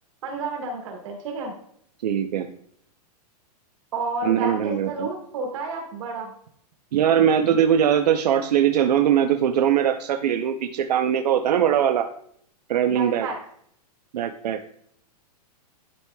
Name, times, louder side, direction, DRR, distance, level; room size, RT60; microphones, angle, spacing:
voice 1, 0.2-1.5 3.9-6.3 12.9-13.4, right 3 dB, 50° right, 1 dB, 2.3 m, -31 dB
voice 2, 2.0-2.5 4.2-5.1 6.9-12.1 12.7-13.3 14.1-14.6, right 9 dB, 80° right, 6 dB, 0.7 m, -21 dB
11.5 x 4.7 x 2.3 m, 0.66 s
supercardioid pair, 180°, 20 cm